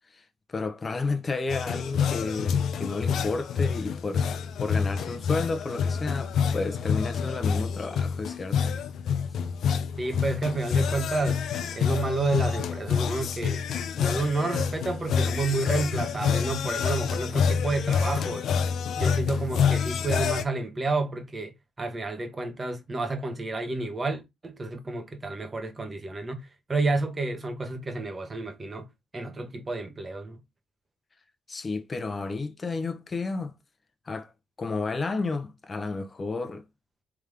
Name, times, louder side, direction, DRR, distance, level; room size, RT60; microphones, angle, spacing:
voice 1, 0.5-4.3 4.6-8.7 31.5-33.5 34.1-34.3 34.6-36.6, left 3 dB, 30° left, 0.8 m, -31 dB
sound 1, 1.5-20.4, left 6 dB, 70° left, 0.5 m, -27 dB
voice 2, 10.0-11.4 11.7-13.6 14.0-18.5 19.0-21.5 21.8-28.9 29.1-30.4, right 3 dB, 25° right, 1.1 m, -30 dB
3.5 x 3.4 x 3.3 m
cardioid pair, 90°, 0 cm